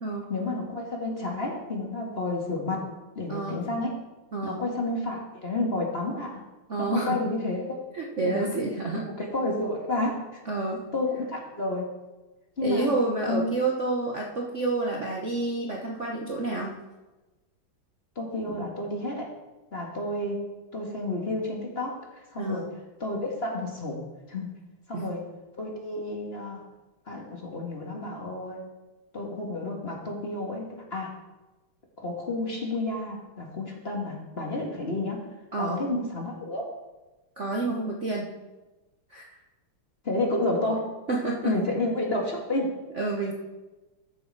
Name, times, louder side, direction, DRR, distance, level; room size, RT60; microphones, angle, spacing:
voice 1, 0.3-2.8 3.1-3.9 4.4-6.4 6.8-7.8 8.2-8.6 9.1-10.4 10.9-11.9 12.6-12.9 13.3-13.4 18.1-19.3 19.7-20.5 20.7-22.7 23.0-24.0 24.3-24.6 24.9-25.3 25.6-26.6 27.0-28.6 29.1-31.1 32.0-35.2 35.6-36.7 40.0-40.9 41.4-42.7, left 2 dB, 30° left, -1 dB, 1.7 m, -30 dB
voice 2, 3.3-3.6 4.3-4.6 6.7-7.2 7.9-9.0 10.5-10.8 12.6-16.7 18.4-18.6 22.4-22.6 24.9-25.1 35.5-35.8 37.4-38.3 39.1-39.3 41.1-41.5 42.9-43.3, right 2 dB, 45° right, -1 dB, 1.1 m, -29 dB
14.0 x 6.9 x 4.7 m, 1.1 s
omnidirectional pair, 2.3 m